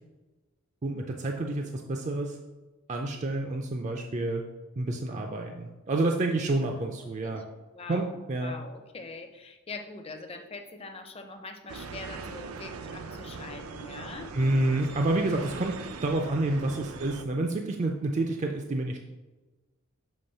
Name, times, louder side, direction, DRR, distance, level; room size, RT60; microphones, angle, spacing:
voice 1, 0.8-2.4 2.9-4.4 4.8-7.4 7.9-8.5 14.3-19.0, right 2 dB, 35° right, 3 dB, 0.4 m, -29 dB
voice 2, 7.0-7.4 7.7-14.3, left 3 dB, 25° left, 5 dB, 0.6 m, -43 dB
sound 1, 11.7-17.2, right 4 dB, 85° right, 0.5 m, -41 dB
7.1 x 3.0 x 5.4 m, 1.2 s
head